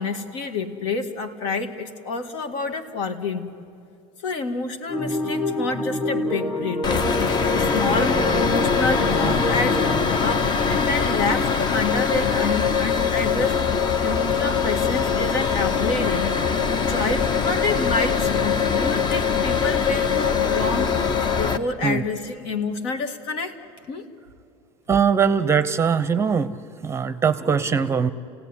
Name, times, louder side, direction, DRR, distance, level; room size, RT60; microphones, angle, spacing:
voice 1, 0.0-3.5 4.2-7.1 7.5-16.3 16.9-20.9 21.4-23.6 23.9-24.0, left 3 dB, 75° left, 6 dB, 2.2 m, -28 dB
sound 1, 4.9-10.2, left 1 dB, 15° left, 1.7 m, -27 dB
sound 2, 6.8-21.6, left 6 dB, 30° left, 0.8 m, -22 dB
voice 2, 24.9-26.6 26.8-28.1, right 6 dB, 20° right, 12 dB, 0.7 m, -21 dB
29.5 x 16.5 x 10.0 m, 2.5 s
cardioid pair, 145°, 14 cm